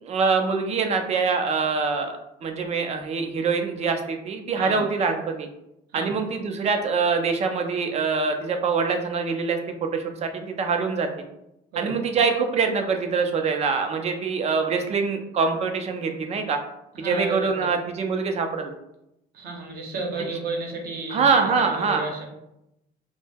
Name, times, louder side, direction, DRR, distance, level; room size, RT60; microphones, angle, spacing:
voice 1, 0.0-2.1 2.4-5.5 5.9-11.1 11.8-16.6 17.0-18.7 21.1-22.0, right 5 dB, 40° right, 5 dB, 0.4 m, -24 dB
voice 2, 16.9-17.7 19.3-22.2, right 3 dB, 65° right, 1 dB, 0.7 m, -32 dB
2.2 x 2.0 x 3.2 m, 0.84 s
cardioid pair, 110°, 17 cm